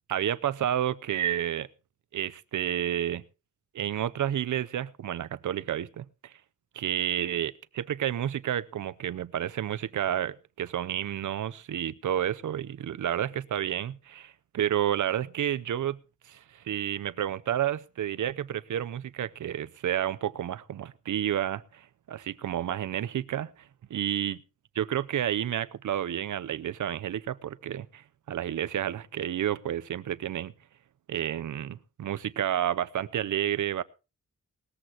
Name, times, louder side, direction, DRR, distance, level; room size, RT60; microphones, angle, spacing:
voice 1, 0.1-1.7 2.1-3.2 3.7-6.3 6.7-16.0 16.3-23.5 23.9-24.4 24.7-30.5 31.1-33.8, right 10 dB, 70° right, 0.6 m, -30 dB
19.5 x 14.0 x 2.9 m
wide cardioid pair, 135°, 31 cm